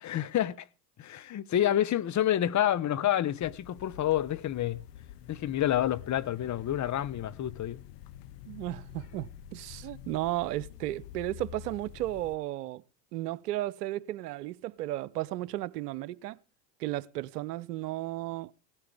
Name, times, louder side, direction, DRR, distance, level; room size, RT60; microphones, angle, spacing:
voice 1, 0.0-0.6 1.0-4.8 5.3-7.8, left 11 dB, 35° left, 1.0 m, -28 dB
sound 1, 3.4-12.4, left 11 dB, 80° left, 0.9 m, -48 dB
voice 2, 8.5-12.8 13.1-16.4 16.8-18.5, right 15 dB, 80° right, 0.9 m, -34 dB
17.5 x 13.5 x 3.5 m
hypercardioid pair, 80°, 47 cm